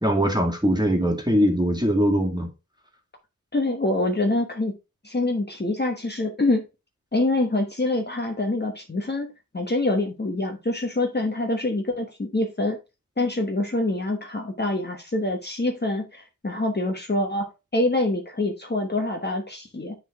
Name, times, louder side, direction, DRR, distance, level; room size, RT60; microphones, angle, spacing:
voice 1, 0.0-2.5, equal, 10° right, 2.0 m, -21 dB
voice 2, 3.5-4.7 5.0-6.6 7.1-12.8 13.2-20.0, left 2 dB, 30° left, 1.1 m, -25 dB
9.3 x 3.9 x 3.6 m
wide cardioid pair, 75°, 33 cm